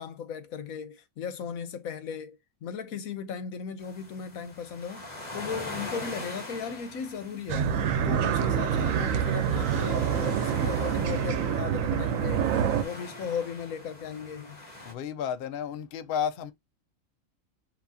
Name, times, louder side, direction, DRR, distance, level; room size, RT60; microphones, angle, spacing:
voice 1, 0.0-5.1 5.3-7.7 8.0-12.5 12.8-14.6, left 7 dB, 80° left, 1.2 m, -37 dB
sound 1, 3.8-14.9, left 2 dB, 30° left, 1.5 m, -42 dB
sound 2, 7.5-12.8, right 8 dB, 70° right, 1.1 m, -26 dB
voice 2, 14.9-16.5, left 8 dB, 55° left, 0.7 m, -32 dB
7.0 x 2.8 x 2.7 m
omnidirectional pair, 1.4 m